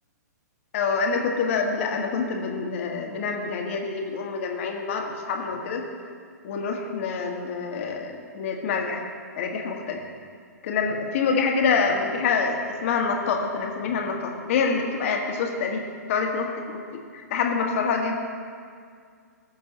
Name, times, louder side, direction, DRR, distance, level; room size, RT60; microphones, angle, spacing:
voice 1, 0.7-5.8 6.4-9.0 9.4-10.0 10.6-15.8 16.1-16.8 17.1-18.1, left 5 dB, 50° left, 2 dB, 1.3 m, -26 dB
18.0 x 6.8 x 2.9 m, 2.1 s
figure-of-eight pair, 115°, 9 cm